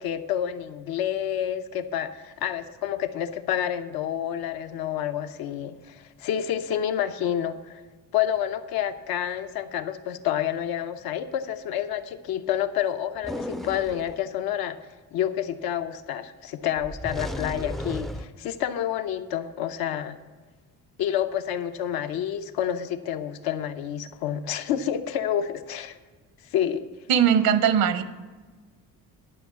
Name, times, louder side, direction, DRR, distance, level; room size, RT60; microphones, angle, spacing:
voice 1, 0.0-7.8 8.1-14.8 15.1-20.2 21.0-26.0 26.5-26.8, left 10 dB, 80° left, 8 dB, 0.8 m, -29 dB
sound 1, 13.2-14.2 16.8-18.3, equal, ahead, 0.3 m, -34 dB
voice 2, 27.1-28.0, right 8 dB, 80° right, 11 dB, 1.0 m, -20 dB
11.0 x 5.6 x 8.3 m, 1.3 s
cardioid pair, 115°, 35 cm